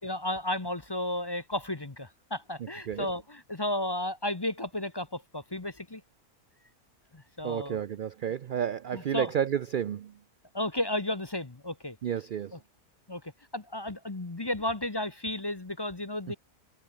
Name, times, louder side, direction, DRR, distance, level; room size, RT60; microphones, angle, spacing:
voice 1, 0.0-6.0 7.1-7.8 8.9-9.3 10.5-12.0 13.1-13.2 13.5-16.4, left 1 dB, 20° left, 0.9 m, -33 dB
voice 2, 7.4-10.2 12.0-12.6 16.3-16.4, right 9 dB, 70° right, 0.4 m, -31 dB
omnidirectional pair, 1.5 m